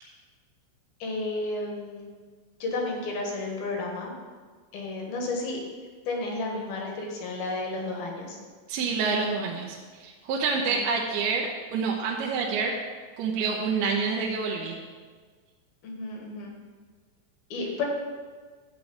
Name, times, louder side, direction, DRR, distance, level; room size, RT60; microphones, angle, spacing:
voice 1, 1.0-2.1 2.6-4.2 4.7-5.6 6.1-8.4 10.7-10.8 15.8-16.5 17.5-17.8, left 2 dB, 60° left, 0 dB, 3.1 m, -32 dB
voice 2, 8.7-12.8 13.2-14.8, right 5 dB, 75° right, -2 dB, 2.6 m, -28 dB
12.5 x 4.6 x 8.5 m, 1.5 s
omnidirectional pair, 5.4 m